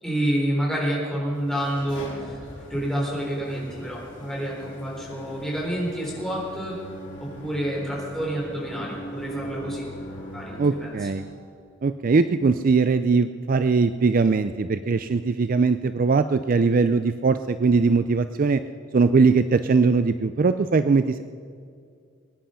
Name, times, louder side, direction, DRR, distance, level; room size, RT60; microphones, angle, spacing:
voice 1, 0.0-2.4 2.7-6.8 7.2-11.1, right 1 dB, 5° left, -4 dB, 3.9 m, -29 dB
sound 1, 1.2-11.5, equal, 65° left, 4.4 m, -40 dB
voice 2, 10.6-11.2 11.8-18.6 18.9-21.2, right 4 dB, 45° right, 11 dB, 0.4 m, -20 dB
21.5 x 10.0 x 5.7 m, 2.3 s
head